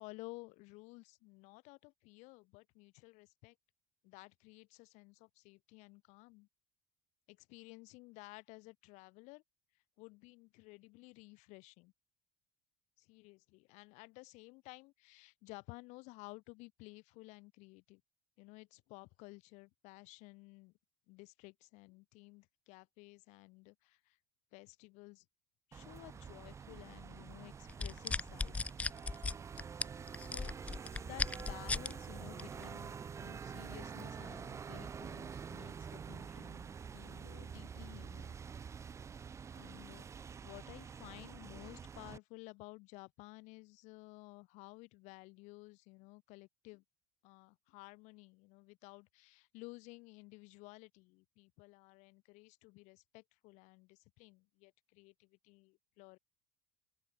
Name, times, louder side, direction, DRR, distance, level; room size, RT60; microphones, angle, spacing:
voice 1, 0.0-3.5 4.0-6.5 7.3-9.4 10.0-11.9 13.0-18.0 18.4-20.7 21.1-24.2 24.5-25.2 25.7-28.6 30.2-30.5 31.0-38.3 39.5-40.1 40.4-46.8 47.2-56.2, left 25 dB, 70° left, 0.8 m, -54 dB
sound 1, 25.7-42.2, right 6 dB, 25° right, 0.6 m, -47 dB
sound 2, 27.7-31.9 32.4-32.6, left 3 dB, 10° left, 0.3 m, -37 dB
open air
cardioid pair, 130°, 13 cm